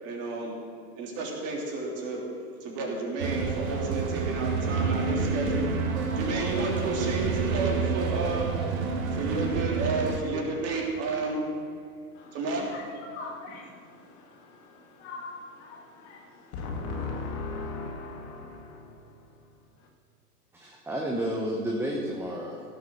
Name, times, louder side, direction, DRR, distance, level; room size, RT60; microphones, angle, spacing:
voice 1, 0.0-0.6 1.0-2.2 2.6-5.7 6.1-8.5 8.8-11.5 12.3-12.7 13.5-13.6, right 3 dB, 30° right, -1 dB, 3.3 m, -31 dB
sound 1, 3.2-10.2, right 4 dB, 55° right, 2.0 m, -28 dB
voice 2, 12.7-19.1, left 3 dB, 45° left, 2 dB, 2.0 m, -39 dB
voice 3, 20.6-22.6, right 1 dB, 5° right, -1 dB, 1.0 m, -31 dB
17.0 x 7.4 x 6.4 m, 2.4 s
hypercardioid pair, 115°, 47 cm